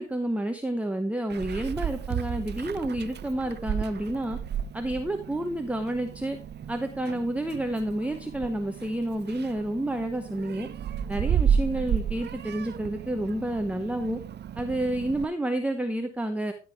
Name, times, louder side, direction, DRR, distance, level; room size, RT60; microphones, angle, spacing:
voice 1, 0.0-4.4 4.7-6.4 6.7-10.7 11.1-14.2 14.6-16.5, right 1 dB, 5° right, 6 dB, 0.8 m, -29 dB
Meow, 1.3-15.2, right 8 dB, 35° right, 0.4 m, -32 dB
14.0 x 5.3 x 3.4 m, 0.36 s
cardioid pair, 90°, 30 cm